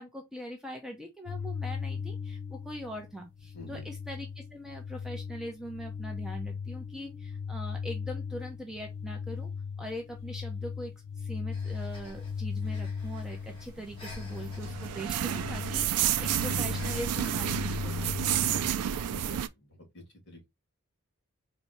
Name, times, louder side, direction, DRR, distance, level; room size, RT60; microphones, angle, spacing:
voice 1, 0.0-9.5 9.8-18.2 18.5-18.7, equal, 5° right, 0.5 m, -42 dB
sound 1, 1.3-18.8, left 6 dB, 85° left, 0.7 m, -38 dB
voice 2, 3.5-3.8 19.1-20.5, left 1 dB, 50° left, 2.4 m, -48 dB
Breathing, 11.5-19.0, left 1 dB, 25° left, 1.4 m, -52 dB
sound 2, 13.5-19.5, right 10 dB, 85° right, 0.4 m, -30 dB
4.1 x 2.7 x 3.1 m
head